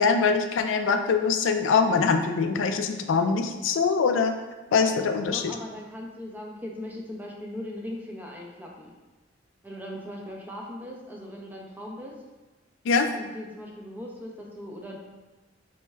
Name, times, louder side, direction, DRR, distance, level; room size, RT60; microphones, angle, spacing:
voice 1, 0.0-4.3 4.7-5.4 12.8-13.1, left 5 dB, 80° left, 7 dB, 0.4 m, -23 dB
voice 2, 5.3-8.9 9.6-12.1 13.1-15.0, left 1 dB, 10° right, -1 dB, 0.5 m, -39 dB
4.4 x 3.1 x 2.3 m, 1.2 s
head